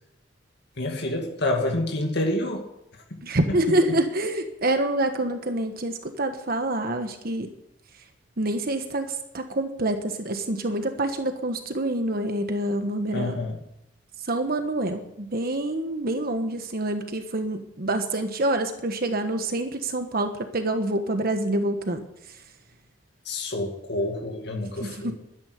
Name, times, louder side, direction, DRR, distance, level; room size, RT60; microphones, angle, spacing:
voice 1, 0.8-2.7 3.1-3.2 3.5-3.7 13.1-13.6 23.2-25.1, left 1 dB, 60° left, 1 dB, 2.2 m, -28 dB
voice 2, 3.2-7.5 8.4-13.3 14.2-22.0 24.8-25.1, right 1 dB, 55° right, 7 dB, 1.3 m, -26 dB
12.5 x 9.9 x 9.7 m, 0.85 s
head